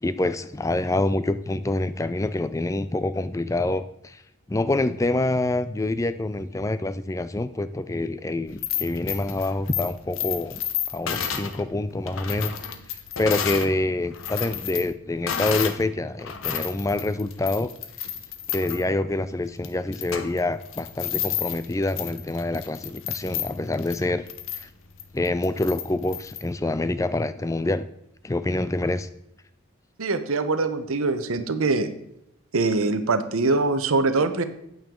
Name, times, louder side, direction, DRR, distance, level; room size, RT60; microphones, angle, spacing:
voice 1, 0.0-4.2 4.5-10.6 10.9-12.6 13.2-17.7 18.5-24.3 24.6-24.7 25.1-27.9 28.2-29.1, left 2 dB, 15° left, 13 dB, 0.3 m, -26 dB
sound 1, 8.5-13.7 14.1-15.8 16.2-26.4, left 9 dB, 65° left, 0.8 m, -32 dB
voice 2, 30.0-31.9 32.5-34.4, right 3 dB, 75° right, 10 dB, 0.8 m, -23 dB
8.9 x 8.8 x 3.7 m, 0.77 s
head